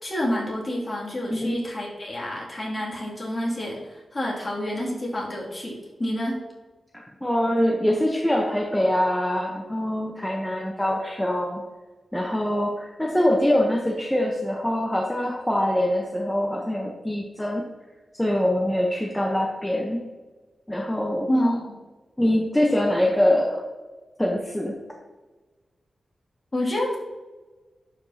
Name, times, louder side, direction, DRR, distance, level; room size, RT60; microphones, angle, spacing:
voice 1, 0.0-6.4 21.3-21.8 26.5-27.0, left 1 dB, 30° left, -4 dB, 2.5 m, -28 dB
voice 2, 6.9-11.6 12.1-17.6 18.1-20.0 20.7-21.3 22.2-23.6 24.2-24.7, left 1 dB, 5° left, -1 dB, 0.9 m, -24 dB
11.5 x 5.2 x 2.9 m, 1.2 s
wide cardioid pair, 90°, 0 cm